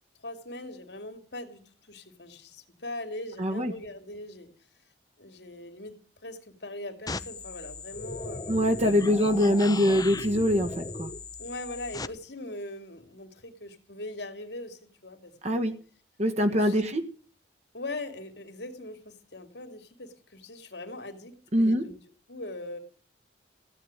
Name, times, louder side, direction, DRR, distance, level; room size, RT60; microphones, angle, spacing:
voice 1, 0.2-4.5 5.2-5.9 6.2-8.8 11.4-15.7 16.5-17.0 17.7-22.0 22.3-22.8, left 2 dB, 75° left, 7 dB, 2.9 m, -41 dB
voice 2, 3.4-3.7 8.5-11.1 15.4-15.7 16.2-17.0 21.5-21.8, equal, 40° right, 6 dB, 1.5 m, -23 dB
sound 1, 7.1-12.1, left 3 dB, 20° left, 0.7 m, -37 dB
16.0 x 9.8 x 8.9 m, 0.41 s
head